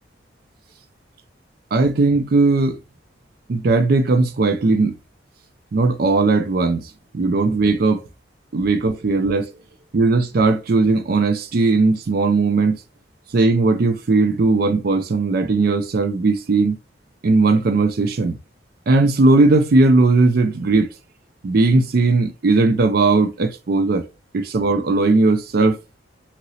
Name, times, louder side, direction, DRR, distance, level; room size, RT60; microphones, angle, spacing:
voice 1, 1.7-2.8 3.5-4.9 5.7-6.8 7.1-8.0 8.5-9.5 9.9-12.8 13.3-16.8 17.2-18.4 18.9-20.9 21.4-24.0 24.3-25.8, right 3 dB, 50° right, 0.4 m, -17 dB
2.9 x 2.8 x 2.7 m
head